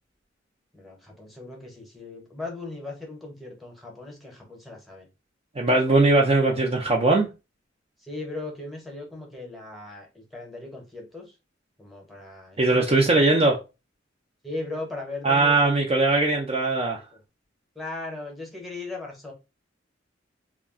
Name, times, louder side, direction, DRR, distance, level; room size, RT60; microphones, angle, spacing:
voice 1, 0.7-5.1 8.0-11.3 11.8-13.2 14.4-15.9 17.1-17.2 17.7-19.3, left 2 dB, ahead, 0.8 m, -38 dB
voice 2, 5.6-7.3 12.6-13.6 15.2-17.0, right 2 dB, 30° right, 0.4 m, -20 dB
2.3 x 2.1 x 3.5 m
head